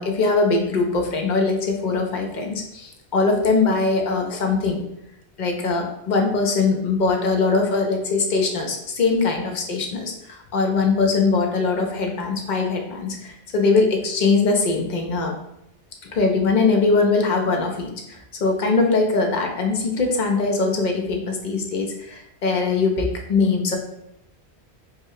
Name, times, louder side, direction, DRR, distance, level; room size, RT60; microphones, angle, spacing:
voice 1, 0.0-4.8 5.4-15.3 16.1-23.8, left 4 dB, 50° left, 2 dB, 0.6 m, -21 dB
4.9 x 2.1 x 2.7 m, 0.80 s
omnidirectional pair, 1.1 m